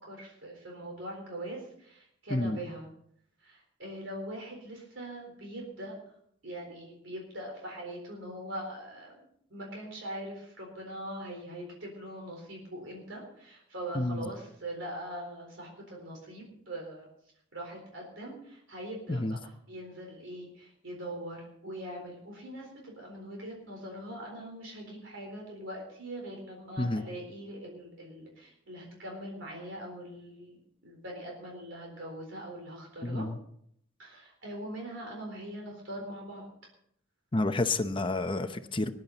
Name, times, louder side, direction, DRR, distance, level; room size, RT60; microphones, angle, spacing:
voice 1, 0.0-2.9 3.4-6.0 6.4-9.1 9.5-17.1 17.5-33.3 34.0-36.5, right 1 dB, 70° right, 0 dB, 4.2 m, -42 dB
voice 2, 33.0-33.4 37.3-38.9, left 2 dB, 25° left, 8 dB, 0.8 m, -29 dB
21.0 x 10.5 x 4.1 m, 0.68 s
head